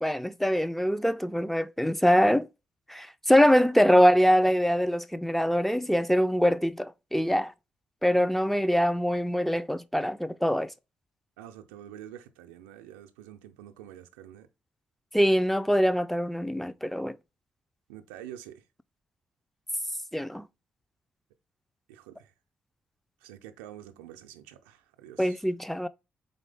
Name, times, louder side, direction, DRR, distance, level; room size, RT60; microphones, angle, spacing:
voice 1, 0.0-2.5 2.9-7.5 8.0-10.7 15.1-17.1 20.1-20.5 25.2-25.9, equal, 5° left, 0.4 m, -23 dB
voice 2, 11.4-14.5 17.9-18.6 21.9-22.3 23.2-25.4, right 11 dB, 85° right, 0.4 m, -47 dB
4.0 x 3.7 x 3.4 m
hypercardioid pair, 40°, 4 cm